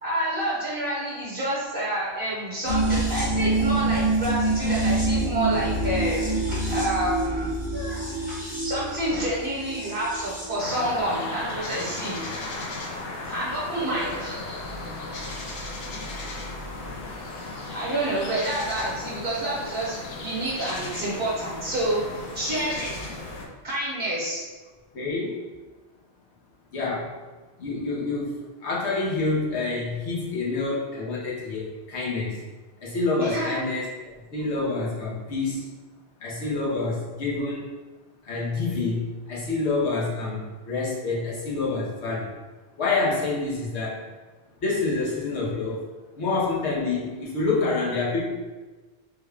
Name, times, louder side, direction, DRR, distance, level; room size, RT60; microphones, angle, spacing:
voice 1, 0.0-12.5 13.3-14.3 17.7-23.2 23.6-24.4 33.2-33.6, right 1 dB, 60° right, -6 dB, 1.0 m, -29 dB
sound 1, 2.7-10.6 10.8-10.9, right 2 dB, 35° left, 0.9 m, -26 dB
sound 2, 10.6-23.5, left 2 dB, 70° left, 0.8 m, -35 dB
voice 2, 24.9-25.4 26.7-27.2 27.6-28.3 28.6-32.4 32.8-33.9 34.3-35.7 36.2-37.6 38.2-42.3 42.8-44.0 44.6-45.9 46.2-48.3, left 3 dB, 90° left, -6 dB, 1.2 m, -27 dB
3.4 x 2.2 x 3.2 m, 1.3 s
omnidirectional pair, 1.1 m